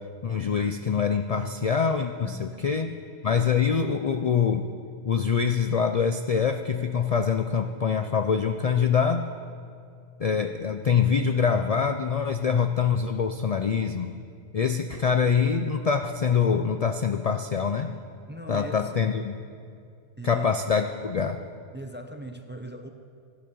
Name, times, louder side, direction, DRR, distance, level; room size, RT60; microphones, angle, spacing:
voice 1, 0.2-2.9 3.2-4.7 5.1-9.3 10.2-14.1 14.5-17.9 18.5-19.4 20.2-21.4, left 6 dB, 70° left, 7 dB, 0.3 m, -24 dB
voice 2, 18.3-19.1 20.2-20.5 21.7-22.9, right 1 dB, 15° right, 6 dB, 0.5 m, -40 dB
12.5 x 11.5 x 6.9 m, 2.4 s
omnidirectional pair, 1.3 m